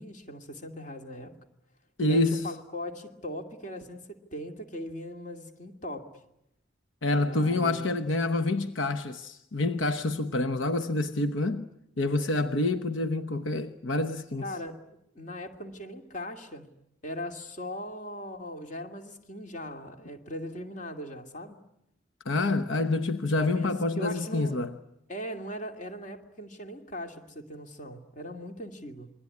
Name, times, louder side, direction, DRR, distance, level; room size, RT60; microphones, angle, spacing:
voice 1, 0.0-1.3 2.0-6.1 7.1-8.0 14.4-16.7 17.0-21.6 23.4-24.6 25.1-29.1, equal, 40° left, 2.5 m, -39 dB
voice 2, 2.0-2.4 7.0-11.7 12.0-14.4 22.2-24.7, left 2 dB, 75° left, 1.0 m, -27 dB
27.5 x 22.0 x 9.7 m
head